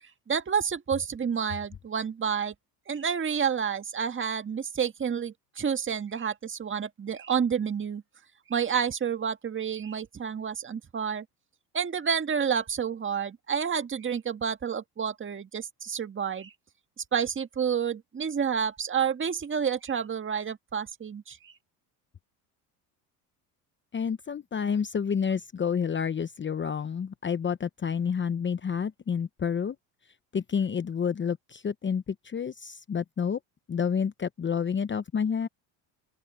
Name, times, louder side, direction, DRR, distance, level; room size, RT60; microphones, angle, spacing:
voice 1, 0.3-2.5 2.9-8.0 8.5-11.3 11.7-16.5 17.0-21.5, right 7 dB, 25° right, 1.8 m, -29 dB
voice 2, 23.9-29.8 30.3-33.4 33.7-35.5, left 7 dB, 25° left, 1.0 m, -29 dB
open air
supercardioid pair, 85°, 45 cm